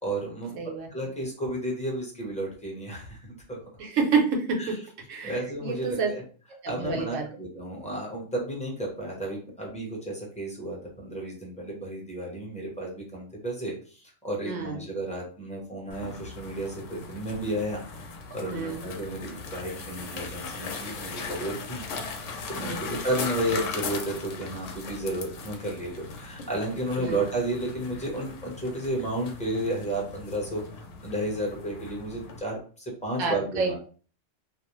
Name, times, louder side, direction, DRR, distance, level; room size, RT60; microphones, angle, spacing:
voice 1, 0.0-3.2 3.5-3.6 4.6-4.7 5.2-6.2 6.7-21.8 22.5-33.8, right 1 dB, 5° left, -2 dB, 0.7 m, -32 dB
voice 2, 0.5-0.9 3.8-4.7 5.1-6.1 6.6-7.3 14.4-14.9 18.5-18.8 22.6-22.9 27.0-27.2 33.2-33.8, right 4 dB, 80° right, 1 dB, 1.1 m, -28 dB
sound 1, 15.9-32.4, left 4 dB, 80° left, 0.9 m, -39 dB
2.5 x 2.0 x 3.0 m, 0.40 s
omnidirectional pair, 1.3 m